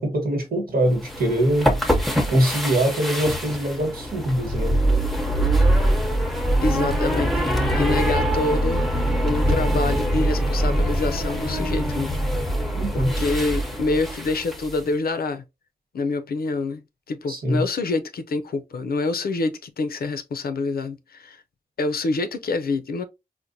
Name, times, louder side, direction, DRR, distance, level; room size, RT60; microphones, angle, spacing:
voice 1, 0.0-1.7 2.3-4.8 12.7-13.1 17.3-17.6, right 1 dB, 75° right, 1.2 m, -23 dB
sound 1, 0.9-14.8, right 1 dB, ahead, 0.7 m, -23 dB
voice 2, 6.6-7.4 7.8-8.8 9.2-12.2 13.2-15.4 15.9-21.4 21.8-23.0, left 3 dB, 85° left, 0.5 m, -26 dB
4.5 x 2.1 x 2.6 m
wide cardioid pair, 85°, 15 cm